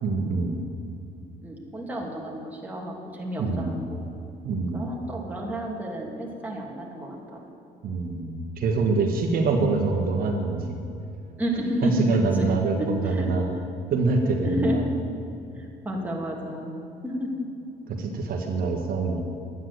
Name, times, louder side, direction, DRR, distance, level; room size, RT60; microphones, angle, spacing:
voice 1, 0.0-0.6 3.4-3.8 4.4-4.9 7.8-10.8 11.8-13.5 13.9-14.8 17.9-19.2, right 3 dB, 60° right, 1 dB, 1.5 m, -25 dB
voice 2, 1.4-4.1 4.7-7.2 11.4-12.5 13.0-13.3 14.4-14.9 15.6-17.5, equal, 10° right, -3 dB, 2.7 m, -31 dB
11.5 x 9.5 x 7.9 m, 2.6 s
cardioid pair, 110°, 17 cm